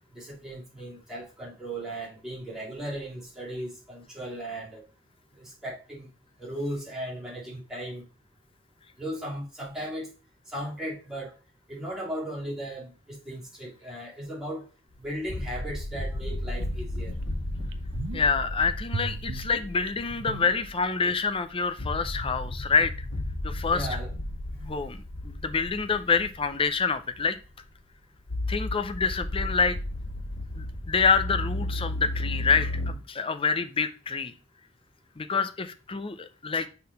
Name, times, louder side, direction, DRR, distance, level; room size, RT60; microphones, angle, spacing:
voice 1, 0.1-4.8 5.4-6.1 6.4-8.0 9.0-10.1 10.5-11.3 11.7-14.6 15.0-17.1 23.6-24.1, right 1 dB, 5° right, -6 dB, 2.5 m, -36 dB
sound 1, 15.0-21.2 21.6-26.9 27.1-27.3 28.3-32.9, left 1 dB, 75° left, 1.7 m, -34 dB
sound 2, 16.6-16.7 17.2-17.3 17.6-18.4 18.9-21.1 21.4-21.5, right 3 dB, 75° right, 0.6 m, -37 dB
voice 2, 18.1-23.1 23.4-23.9 24.6-27.4 28.5-29.8 30.5-34.3 35.2-36.7, left 5 dB, 30° left, 10 dB, 0.6 m, -27 dB
5.8 x 3.8 x 4.2 m, 0.33 s
head